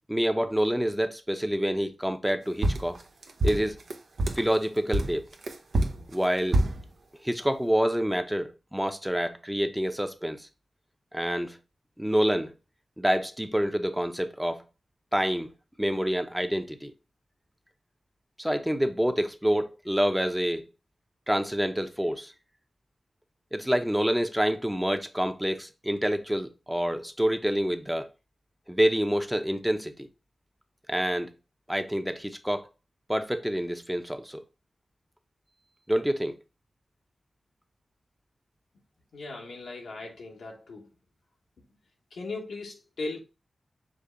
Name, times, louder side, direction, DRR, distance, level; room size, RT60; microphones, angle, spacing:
voice 1, 0.1-3.0 3.4-3.8 4.3-5.2 6.1-6.6 7.2-10.5 11.1-11.6 12.0-12.5 13.0-14.6 15.1-15.5 15.8-16.9 18.4-20.6 21.3-22.3 23.5-28.1 28.7-30.1 30.9-31.3 31.7-32.7 33.1-34.4 35.9-36.4, equal, 5° right, 0.6 m, -27 dB
sound 1, 2.6-4.5 4.9-6.8, right 1 dB, 75° right, 0.6 m, -26 dB
voice 2, 39.1-40.9 42.1-43.2, left 3 dB, 90° left, 1.0 m, -38 dB
5.1 x 2.1 x 3.7 m
cardioid pair, 45°, 0 cm